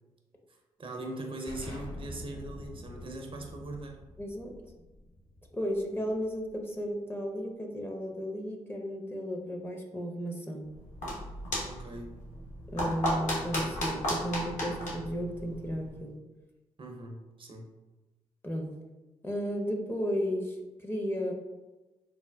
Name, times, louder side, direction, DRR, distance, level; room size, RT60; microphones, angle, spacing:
voice 1, 0.8-4.0 11.6-12.1 16.8-17.7, right 2 dB, 40° right, 2 dB, 0.6 m, -40 dB
Explosion, 1.5-6.9, left 1 dB, 35° left, 1.0 m, -46 dB
voice 2, 4.2-4.5 5.5-10.7 12.7-16.1 18.4-18.7 19.2-21.3, equal, 15° left, 1 dB, 0.6 m, -34 dB
sound 1, 10.7-16.0, equal, 65° left, 1.1 m, -35 dB
4.0 x 2.1 x 2.2 m, 1.1 s
hypercardioid pair, 45°, 14 cm